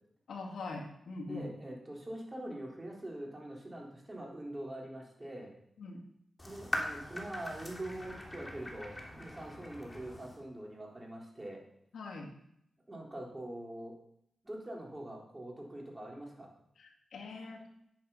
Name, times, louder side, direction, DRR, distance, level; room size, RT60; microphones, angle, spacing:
voice 1, 0.3-1.5 5.8-6.0 11.9-12.3 16.8-17.6, left 3 dB, 85° left, 0 dB, 2.2 m, -42 dB
voice 2, 1.3-5.5 6.4-11.6 12.9-13.9 14.4-16.5, right 1 dB, 20° right, -1 dB, 3.9 m, -44 dB
sound 1, 6.4-10.4, left 1 dB, 20° left, 3.0 m, -41 dB
10.0 x 9.3 x 5.7 m, 0.73 s
cardioid pair, 70°, 0 cm